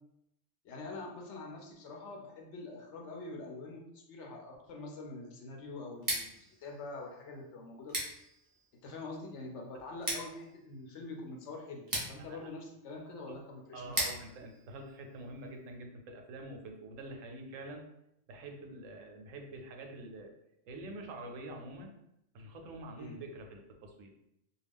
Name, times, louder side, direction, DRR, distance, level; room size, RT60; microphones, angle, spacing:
voice 1, 0.6-8.0 8.8-14.1 23.0-23.2, left 2 dB, 70° left, 1 dB, 0.9 m, -45 dB
Scissors, 5.9-15.7, right 1 dB, 25° right, 0.5 m, -42 dB
voice 2, 12.2-12.5 13.7-17.8 18.3-20.3 20.6-22.0 22.3-24.2, right 2 dB, 85° right, 3 dB, 1.0 m, -46 dB
2.4 x 2.2 x 3.4 m, 0.81 s
omnidirectional pair, 1.3 m